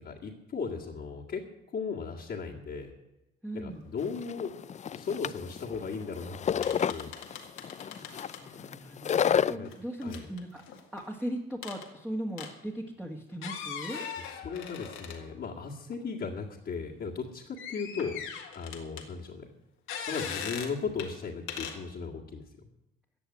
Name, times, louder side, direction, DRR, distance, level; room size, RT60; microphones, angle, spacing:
voice 1, 0.0-1.4 1.7-2.9 3.5-4.5 4.9-7.1 9.4-9.7 10.0-10.3 14.3-18.2 18.5-19.5 20.1-22.4, left 5 dB, 55° left, -5 dB, 2.0 m, -36 dB
voice 2, 3.4-3.9 7.9-9.1 9.5-10.6 10.9-14.0, right 1 dB, 5° right, -1 dB, 1.8 m, -38 dB
sound 1, 4.0-9.5, left 8 dB, 35° left, 0.4 m, -30 dB
sound 2, 5.9-6.0 6.2-6.3 6.6-8.4 9.7-11.0 11.6-11.9 12.4-12.5 13.3-15.5 15.9-16.0 17.6-19.1 19.9-20.7 21.0-21.1 21.5-21.8, left 7 dB, 85° left, 2.0 m, -40 dB
15.0 x 7.1 x 9.9 m, 0.92 s
cardioid pair, 90°, 20 cm